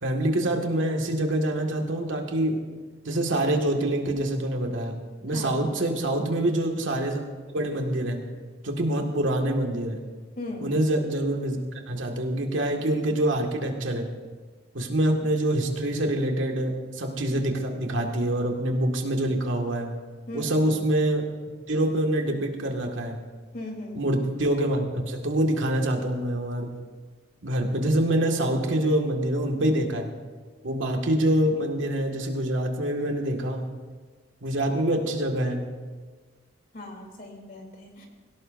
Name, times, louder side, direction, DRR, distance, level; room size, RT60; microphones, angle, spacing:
voice 1, 0.0-2.7 3.1-8.2 8.6-10.0 10.6-14.1 14.7-19.9 20.3-21.3 21.7-23.2 23.9-26.7 27.4-30.1 30.6-33.7 34.4-35.7, right 1 dB, 85° right, 2 dB, 1.9 m, -26 dB
voice 2, 5.3-5.6 10.4-10.7 20.3-20.6 23.5-24.0 36.7-38.1, left 1 dB, 50° left, 0 dB, 3.4 m, -38 dB
22.5 x 17.0 x 2.6 m, 1.4 s
head